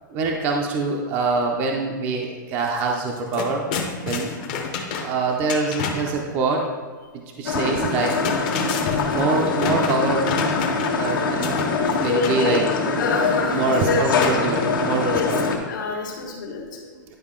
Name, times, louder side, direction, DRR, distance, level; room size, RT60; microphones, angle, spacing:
voice 1, 0.1-3.6 4.1-4.4 5.0-6.7 7.4-8.1 9.1-10.3 10.9-11.7 12.0-12.6 13.5-15.4 16.5-16.7 17.1-17.2, right 3 dB, 15° right, 0 dB, 0.4 m, -24 dB
sound 1, 2.7-2.8 3.1-6.2 7.9-11.1 11.4-12.4 14.2-15.1, left 5 dB, 25° left, 0.6 m, -29 dB
sound 2, 7.5-15.6, left 4 dB, 85° left, 1.4 m, -24 dB
voice 2, 12.1-14.4 15.1-15.4 15.7-16.9, left 4 dB, 65° left, -2 dB, 1.1 m, -26 dB
10.0 x 4.9 x 3.6 m, 1.5 s
hypercardioid pair, 180°, 11 cm